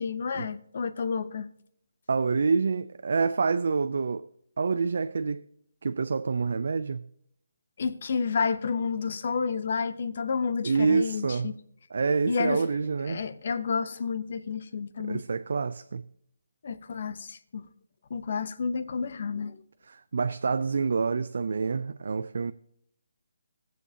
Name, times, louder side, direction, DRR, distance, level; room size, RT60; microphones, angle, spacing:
voice 1, 0.0-1.5 7.8-11.6 12.3-12.6 13.1-15.2 16.6-17.7 18.1-19.6, left 5 dB, 45° left, 0.7 m, -30 dB
voice 2, 2.1-4.3 4.6-5.5 5.8-7.0 10.6-11.5 11.9-13.2 15.0-16.0 19.9-22.5, right 4 dB, 60° right, 0.3 m, -27 dB
18.0 x 7.4 x 2.8 m
hypercardioid pair, 170°, 0 cm